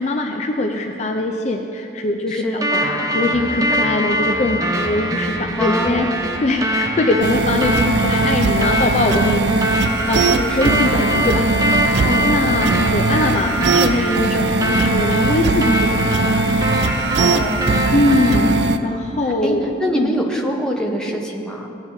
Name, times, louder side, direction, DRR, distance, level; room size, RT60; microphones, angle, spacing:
voice 1, 0.0-9.6 10.1-10.3 10.6-16.5 17.9-19.7 19.9-20.1, left 2 dB, 35° left, 3 dB, 0.4 m, -22 dB
voice 2, 2.3-2.7 5.6-6.2 10.1-10.7 12.0-12.3 17.1-17.7 19.4-21.7, equal, 5° left, -1 dB, 0.9 m, -24 dB
sound 1, 2.6-18.6, equal, 20° right, 0.6 m, -23 dB
sound 2, 7.2-18.8, right 3 dB, 65° right, 0.4 m, -20 dB
15.5 x 8.8 x 2.7 m, 2.6 s
head